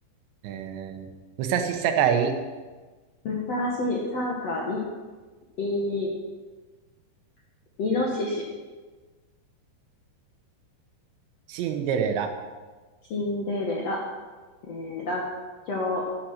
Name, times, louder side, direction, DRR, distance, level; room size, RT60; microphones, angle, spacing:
voice 1, 0.4-1.1 1.4-2.3 11.5-12.3, right 8 dB, 90° right, 6 dB, 3.4 m, -25 dB
voice 2, 3.2-4.8 5.6-6.1 7.8-8.4 13.1-14.0 14.6-15.2 15.7-16.0, left 2 dB, 65° left, -2 dB, 1.7 m, -28 dB
11.5 x 9.1 x 6.5 m, 1.3 s
omnidirectional pair, 5.0 m